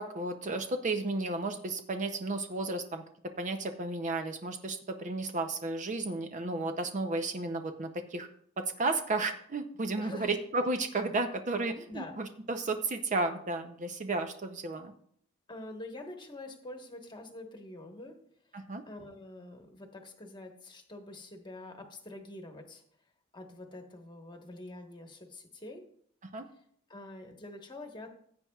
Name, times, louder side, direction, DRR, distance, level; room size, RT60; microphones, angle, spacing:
voice 1, 0.0-3.0 3.4-8.3 8.6-14.9 18.5-18.8 26.3-26.5, right 2 dB, 35° right, 7 dB, 0.6 m, -33 dB
voice 2, 10.0-10.3 11.9-12.2 15.5-18.2 18.9-22.8 23.3-25.8 26.9-28.1, left 2 dB, 20° left, 3 dB, 1.2 m, -46 dB
15.5 x 8.5 x 2.3 m, 0.64 s
head